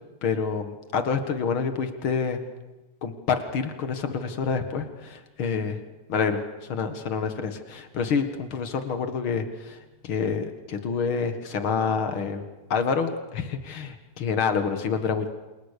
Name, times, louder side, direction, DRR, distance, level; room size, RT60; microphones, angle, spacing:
voice 1, 0.2-2.4 3.0-5.8 6.1-9.8 10.0-12.4 12.7-15.3, left 5 dB, 60° left, 8 dB, 1.3 m, -27 dB
29.5 x 28.0 x 6.8 m, 1.1 s
omnidirectional pair, 5.0 m